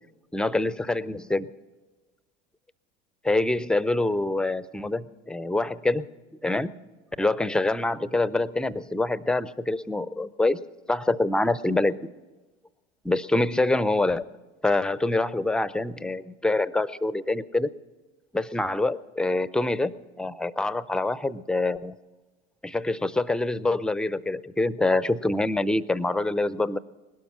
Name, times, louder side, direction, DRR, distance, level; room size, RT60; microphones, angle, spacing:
voice 1, 0.3-1.5 3.2-6.1 6.4-6.7 7.2-10.6 10.9-12.1 13.0-14.3 14.6-17.7 18.3-22.0 22.6-26.8, left 2 dB, ahead, 17 dB, 0.4 m, -25 dB
20.5 x 12.5 x 5.6 m, 1.2 s
figure-of-eight pair, 75°, 36 cm